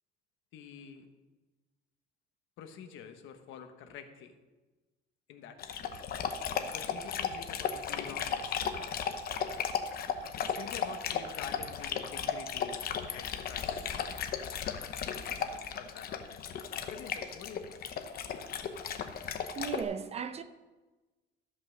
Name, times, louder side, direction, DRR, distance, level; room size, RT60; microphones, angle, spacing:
voice 1, 0.5-1.0 2.6-4.3 5.3-6.0 6.6-8.7 10.4-13.9 14.4-14.9 15.2-17.8, left 7 dB, 85° left, 1.2 m, -48 dB
Dog, 5.6-19.8, left 7 dB, 50° left, 0.9 m, -35 dB
voice 2, 19.6-20.4, right 6 dB, 35° right, 0.6 m, -36 dB
13.5 x 5.6 x 6.5 m
cardioid pair, 155°, 20 cm